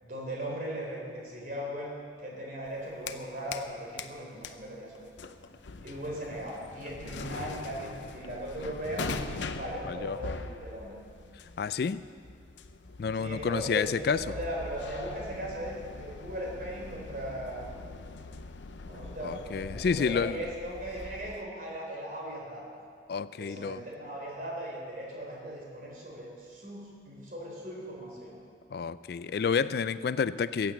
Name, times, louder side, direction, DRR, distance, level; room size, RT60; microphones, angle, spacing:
voice 1, 0.0-5.1 5.8-9.1 9.5-11.0 13.1-17.7 18.9-22.8 23.4-28.4, right 1 dB, 45° right, -2 dB, 3.7 m, -38 dB
sound 1, 2.7-3.7 4.0-21.4, left 3 dB, 80° left, 0.7 m, -42 dB
voice 2, 9.9-10.4 11.6-12.0 13.0-14.2 19.2-20.5 23.1-23.8 28.7-30.7, left 6 dB, 55° left, 15 dB, 0.3 m, -30 dB
15.0 x 8.6 x 7.5 m, 2.3 s
head